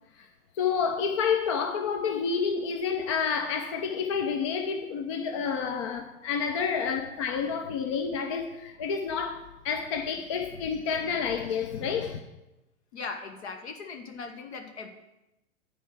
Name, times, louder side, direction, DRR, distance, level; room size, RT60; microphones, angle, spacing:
voice 1, 0.5-12.2, left 6 dB, 25° left, 0.4 m, -29 dB
voice 2, 12.9-14.9, left 4 dB, 50° left, 1.5 m, -39 dB
9.7 x 4.7 x 7.5 m
figure-of-eight pair, 110°, 41 cm